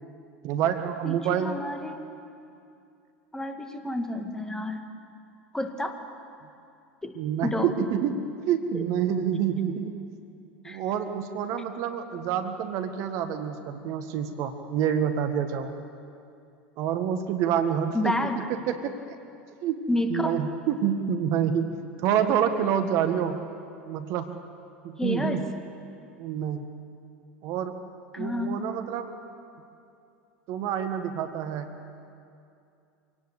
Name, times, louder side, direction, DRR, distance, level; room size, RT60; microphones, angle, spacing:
voice 1, 0.4-1.5 7.1-8.2 8.5-9.9 10.6-15.7 16.8-18.2 18.5-18.9 19.6-19.8 20.1-23.4 23.9-24.3 24.8-25.4 26.2-26.7 27.4-27.7 28.2-29.1 30.5-31.7, right 8 dB, 55° right, 8 dB, 1.6 m, -27 dB
voice 2, 1.0-2.1 3.3-4.8 5.5-6.0 7.0-7.2 7.4-7.7 8.7-8.8 10.6-10.8 17.9-18.5 19.9-20.4 25.0-25.4 28.1-28.6, left 1 dB, 10° left, 6 dB, 2.1 m, -30 dB
25.0 x 17.5 x 8.3 m, 2.5 s
hypercardioid pair, 80°, 6 cm